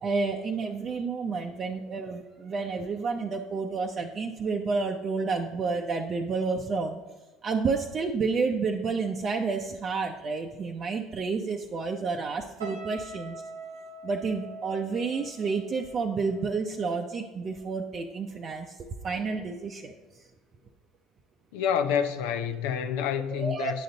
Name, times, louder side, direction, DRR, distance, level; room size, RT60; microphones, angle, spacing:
voice 1, 0.0-7.0 7.4-13.3 14.0-19.9 23.3-23.7, right 4 dB, 40° right, 0.6 m, -30 dB
sound 1, 12.6-17.9 18.2-18.5, right 2 dB, 90° right, 0.9 m, -44 dB
voice 2, 21.5-23.8, left 8 dB, 70° left, 0.5 m, -28 dB
9.3 x 5.2 x 3.9 m
hypercardioid pair, 65°, 0 cm